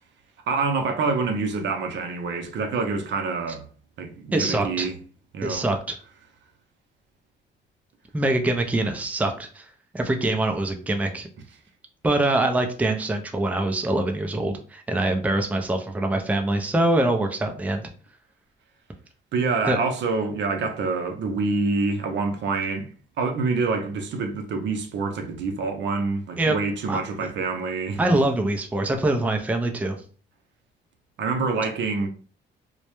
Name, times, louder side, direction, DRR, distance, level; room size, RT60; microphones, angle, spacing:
voice 1, 0.5-3.6 4.0-5.0 5.3-5.7 19.3-22.9 23.2-28.0 31.2-32.1, right 4 dB, 65° right, 0.5 m, -26 dB
voice 2, 4.3-4.9 5.4-6.0 8.1-9.7 9.9-11.3 12.0-17.8 19.7-19.8 26.4-26.6 26.9-27.0 28.0-30.0, right 2 dB, 5° right, 0.4 m, -24 dB
2.2 x 2.0 x 2.9 m
cardioid pair, 90°, 20 cm